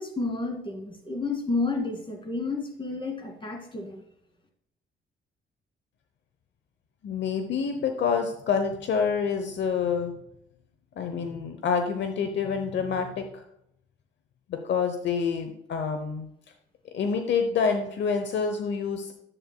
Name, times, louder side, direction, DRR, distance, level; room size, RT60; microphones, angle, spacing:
voice 1, 0.0-4.0, left 3 dB, 25° left, 2 dB, 2.4 m, -31 dB
voice 2, 7.0-10.1 11.0-13.4 14.5-16.3 16.9-19.1, left 6 dB, 65° left, 7 dB, 0.8 m, -27 dB
11.0 x 7.8 x 2.3 m, 0.77 s
cardioid pair, 90°, 20 cm